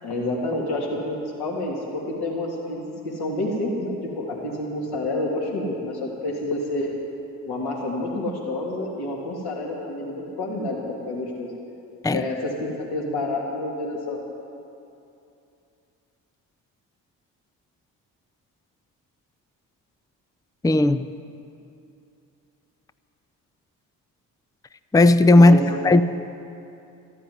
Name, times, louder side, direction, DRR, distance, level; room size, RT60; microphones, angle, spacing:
voice 1, 0.0-2.8 3.0-6.9 7.4-11.5 12.1-14.2 25.4-25.6, left 1 dB, 60° left, 3.1 m, -28 dB
voice 2, 20.6-21.1 24.9-25.6 25.8-26.0, left 2 dB, 10° left, 0.5 m, -14 dB
14.0 x 9.8 x 9.7 m
hypercardioid pair, 45°, 43 cm